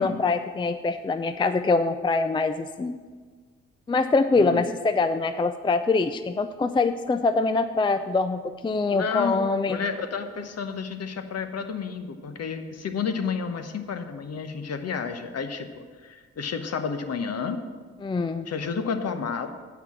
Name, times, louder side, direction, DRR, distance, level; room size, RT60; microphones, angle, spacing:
voice 1, 0.0-3.0 3.9-9.8 18.0-18.4, left 3 dB, 15° left, 10 dB, 0.4 m, -24 dB
voice 2, 8.9-17.6 18.5-19.5, left 6 dB, 50° left, 7 dB, 1.0 m, -31 dB
7.7 x 5.8 x 7.3 m, 1.5 s
hypercardioid pair, 40°, 32 cm